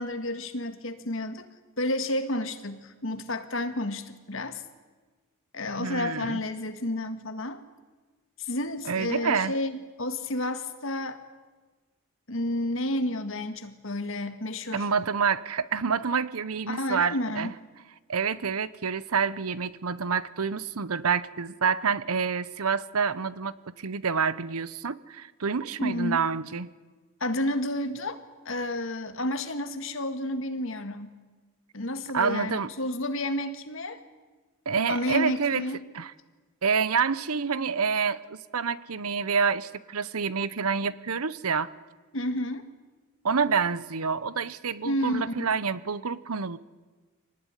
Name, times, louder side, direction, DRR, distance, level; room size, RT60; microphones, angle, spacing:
voice 1, 0.0-1.5 1.8-4.6 5.5-7.6 8.4-11.2 12.3-14.9 16.7-17.5 25.8-26.2 27.2-28.2 28.5-31.1 31.7-34.0 34.9-35.8 42.1-42.7 44.8-45.5, left 1 dB, 60° left, 8 dB, 1.9 m, -31 dB
voice 2, 5.8-6.4 8.9-9.5 14.7-17.5 18.1-26.7 32.1-32.7 34.7-35.6 35.9-36.1 36.6-41.7 43.2-46.6, right 5 dB, 80° right, 17 dB, 0.8 m, -28 dB
24.5 x 18.5 x 9.8 m, 1.3 s
head